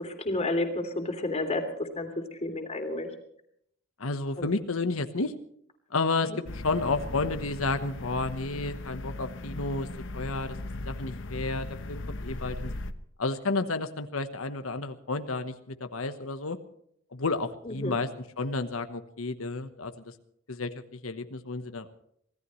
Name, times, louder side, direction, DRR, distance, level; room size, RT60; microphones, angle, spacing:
voice 1, 0.0-2.1 2.4-3.1 4.4-4.5 6.3-6.4 17.7-18.0, left 2 dB, 30° left, 5 dB, 3.1 m, -31 dB
voice 2, 4.0-5.3 5.9-9.9 10.1-12.7 13.2-16.6 17.1-20.1 20.5-21.9, left 3 dB, 80° left, 8 dB, 1.2 m, -31 dB
sound 1, 6.5-12.9, left 2 dB, 65° left, 1.0 m, -38 dB
25.5 x 17.0 x 3.2 m, 0.70 s
head